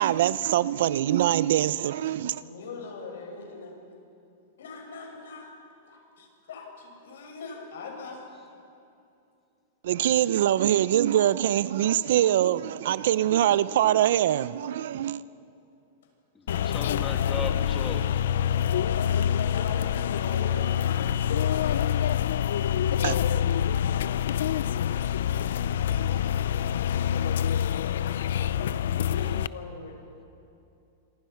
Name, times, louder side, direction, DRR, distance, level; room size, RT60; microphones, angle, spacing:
voice 1, 0.0-2.4 9.8-15.2 23.0-23.2, right 12 dB, 60° right, 0.6 m, -23 dB
voice 2, 2.3-3.7 4.6-5.5 5.8-8.2 16.7-17.0 18.9-21.1 28.0-30.0, left 4 dB, 90° left, 7.0 m, -41 dB
voice 3, 16.3-18.2, left 5 dB, 15° left, 1.4 m, -37 dB
sound 1, 16.5-29.5, left 9 dB, 75° left, 0.6 m, -26 dB
27.0 x 25.0 x 5.9 m
supercardioid pair, 165°, 0 cm